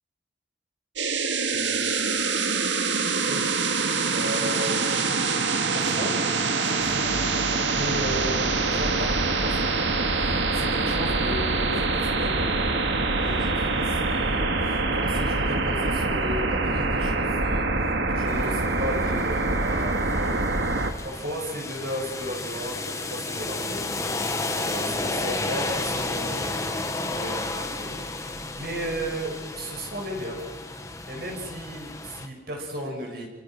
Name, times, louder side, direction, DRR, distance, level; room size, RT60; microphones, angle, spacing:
sound 1, 1.0-20.9, right 3 dB, 75° right, 2.2 m, -25 dB
voice 1, 1.5-2.0 3.2-3.5 4.1-4.9 5.7-6.2 6.6-7.1 7.7-12.8 13.2-20.5 21.0-26.8 27.1-30.4 30.7-30.8 31.1-33.3, equal, 55° right, 0 dB, 6.8 m, -35 dB
sound 2, 18.3-32.3, left 2 dB, 15° left, 1.6 m, -32 dB
29.0 x 25.0 x 6.0 m, 1.3 s
head